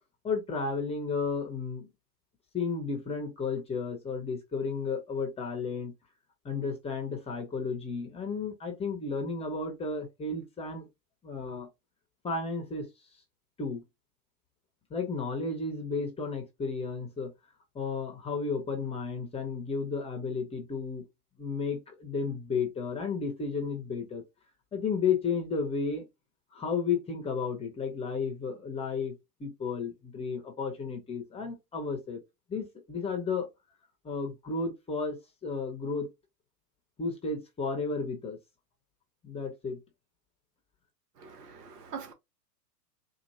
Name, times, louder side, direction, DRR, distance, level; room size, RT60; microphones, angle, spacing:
voice 1, 0.2-1.9 2.5-5.9 6.4-10.9 11.2-11.7 12.2-12.9 13.6-13.8 14.9-17.3 17.7-21.0 21.4-24.2 24.7-26.0 26.5-29.1 29.4-32.2 32.5-33.5 34.0-36.1 37.0-38.4 39.2-39.8, left 4 dB, 15° left, 0.8 m, -33 dB
voice 2, 41.2-42.1, right 6 dB, 75° right, 1.3 m, -43 dB
4.4 x 2.5 x 2.7 m
hypercardioid pair, 130°, 48 cm